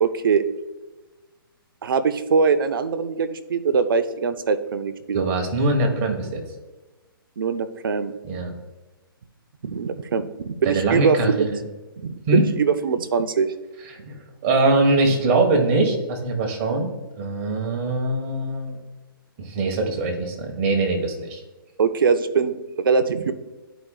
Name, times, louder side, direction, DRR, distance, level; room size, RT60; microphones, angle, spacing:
voice 1, 0.0-0.5 1.8-5.3 7.4-8.1 9.6-11.5 12.0-13.5 21.8-23.3, right 5 dB, 65° right, 10 dB, 0.7 m, -22 dB
voice 2, 5.1-6.4 8.2-8.5 10.6-11.6 12.3-12.4 14.0-16.9 17.2-18.8 19.4-21.4, right 2 dB, 35° right, 2 dB, 1.5 m, -22 dB
12.5 x 5.0 x 2.4 m, 1.2 s
hypercardioid pair, 140°, 12 cm